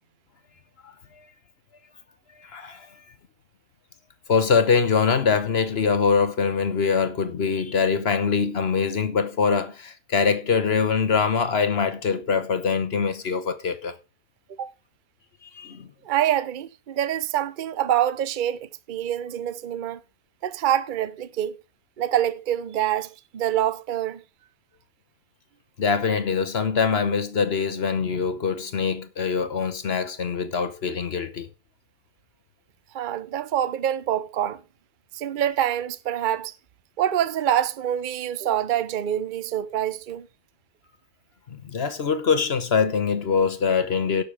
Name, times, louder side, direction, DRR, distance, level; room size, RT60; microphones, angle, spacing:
voice 1, 0.8-1.3 2.4-3.0 4.3-13.9 15.4-15.9 25.8-31.5 41.5-44.2, left 5 dB, 45° left, 1.0 m, -23 dB
voice 2, 16.0-20.0 20.4-21.6 22.0-24.2 32.9-34.6 35.1-36.5 37.0-40.3, right 11 dB, 85° right, 0.4 m, -26 dB
17.0 x 6.7 x 3.4 m
omnidirectional pair, 1.8 m